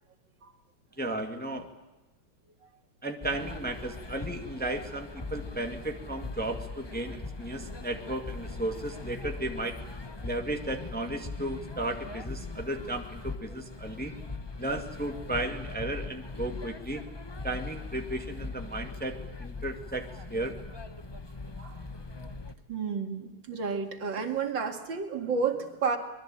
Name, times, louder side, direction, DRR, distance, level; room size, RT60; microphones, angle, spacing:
voice 1, 1.0-1.7 3.0-9.8 10.2-14.1 14.6-17.0 17.4-20.1 20.3-20.5, right 1 dB, 5° left, 4 dB, 1.8 m, -34 dB
sound 1, 3.2-22.5, left 3 dB, 35° left, 0.4 m, -40 dB
voice 2, 22.7-26.0, right 5 dB, 60° right, 5 dB, 2.8 m, -31 dB
24.0 x 22.0 x 8.9 m, 1.1 s
omnidirectional pair, 2.3 m